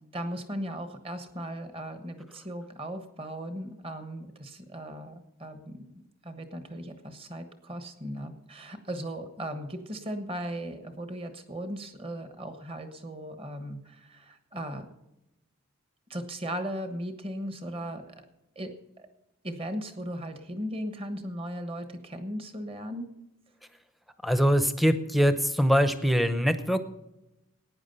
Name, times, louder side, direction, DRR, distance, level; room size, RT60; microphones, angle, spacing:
voice 1, 0.1-14.8 16.1-18.1 18.5-19.1 19.4-23.2, equal, 25° right, 8 dB, 1.2 m, -37 dB
voice 2, 24.2-26.8, equal, ahead, 10 dB, 0.7 m, -23 dB
15.0 x 9.7 x 5.5 m, 0.93 s
head